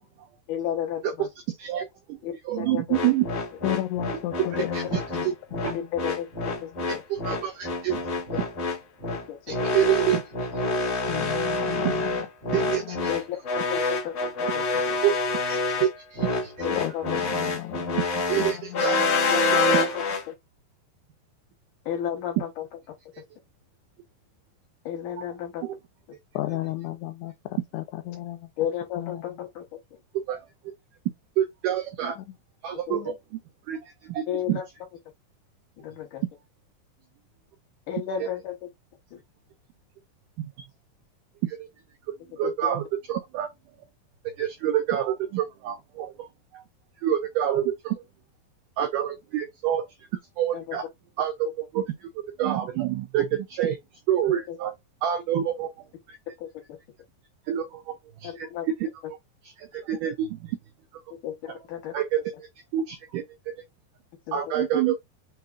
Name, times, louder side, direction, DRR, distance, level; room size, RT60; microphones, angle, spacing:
voice 1, 0.5-1.3 2.2-3.1 4.4-4.8 5.7-6.3 6.6-7.0 8.3-8.4 9.0-9.8 13.1-15.0 16.6-17.2 19.3-20.3 21.9-22.7 23.2-23.3 24.8-25.7 28.6-29.6 32.0-32.1 32.7-33.1 34.3-34.6 35.8-36.2 37.9-38.7 39.1-39.2 42.4-42.8 50.5-50.8 54.5-54.6 56.4-56.5 58.2-58.7 61.2-61.9 64.3-64.5, left 10 dB, 60° left, 2.4 m, -33 dB
voice 2, 1.6-2.2 2.5-3.3 4.7-4.8 5.2-5.3 5.6-5.7 6.9-8.0 9.5-10.2 11.8-11.9 12.5-13.1 15.0-16.5 18.3-19.3 19.6-19.7 25.6-25.8 30.3-30.4 31.4-32.2 32.6-33.1 33.7-34.6 41.5-41.7 42.4-43.5 44.4-46.3 46.5-46.6 47.0-48.0 48.8-49.9 50.4-50.8 51.2-51.5 51.7-52.1 52.4-53.8 54.1-54.7 55.0-55.7 57.5-58.5 58.8-58.9 59.6-60.5 61.9-62.2 62.7-63.2 64.3-65.0, right 11 dB, 85° right, 1.8 m, -27 dB
sound 1, 2.9-20.2, left 3 dB, 35° left, 1.7 m, -27 dB
voice 3, 3.6-5.2 5.5-5.8 11.1-13.1 16.8-18.0 18.4-19.1 26.4-28.5 29.0-29.2 32.2-32.3 32.9-33.2, left 15 dB, 90° left, 2.7 m, -34 dB
6.4 x 2.8 x 2.4 m
omnidirectional pair, 4.6 m